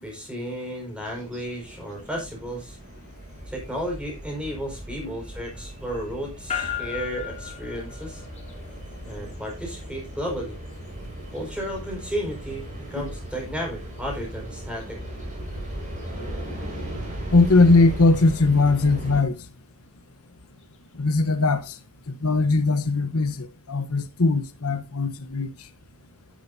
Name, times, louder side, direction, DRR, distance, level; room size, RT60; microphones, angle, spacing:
voice 1, 0.0-2.8 3.5-8.2 9.1-10.6 11.3-15.0, equal, 5° right, 5.0 m, -33 dB
sound 1, 1.0-19.2, right 1 dB, 35° right, 5.4 m, -37 dB
sound 2, 6.5-20.8, left 8 dB, 30° left, 2.3 m, -42 dB
voice 2, 17.3-19.4 21.0-21.7 22.1-25.5, left 3 dB, 80° left, 1.1 m, -20 dB
11.5 x 10.5 x 2.7 m
head